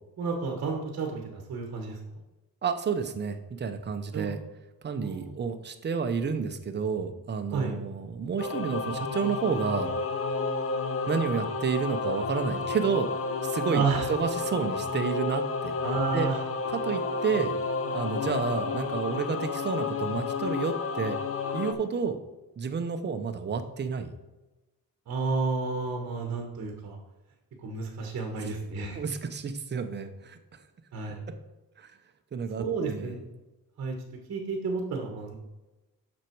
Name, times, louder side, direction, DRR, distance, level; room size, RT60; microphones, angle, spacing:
voice 1, 0.2-2.0 4.1-4.3 5.0-5.4 7.5-7.8 13.7-14.1 15.8-16.4 25.1-27.0 27.6-29.0 30.9-31.2 32.6-33.3 33.8-34.0 34.3-35.4, right 4 dB, 45° right, 2 dB, 1.2 m, -31 dB
voice 2, 2.6-4.4 4.8-9.9 11.1-13.1 13.4-13.8 14.1-15.7 16.1-16.3 16.7-17.5 17.9-21.2 21.5-22.2 22.6-24.1 28.4-28.6 28.9-30.4 31.8-31.9 32.3-33.2, right 6 dB, 30° right, 7 dB, 0.7 m, -30 dB
Singing / Musical instrument, 8.4-21.7, left 4 dB, 40° left, 0.7 m, -31 dB
7.4 x 6.3 x 4.6 m, 1.1 s
cardioid pair, 155°, 37 cm